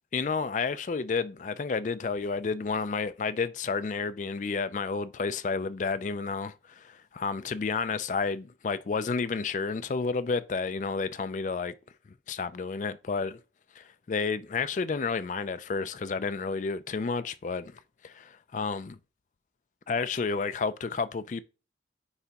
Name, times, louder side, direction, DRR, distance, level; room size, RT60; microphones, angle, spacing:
voice 1, 0.1-11.7 12.3-13.4 13.8-19.0 19.9-21.4, left 4 dB, 45° left, 0.4 m, -31 dB
9.6 x 3.3 x 2.9 m
head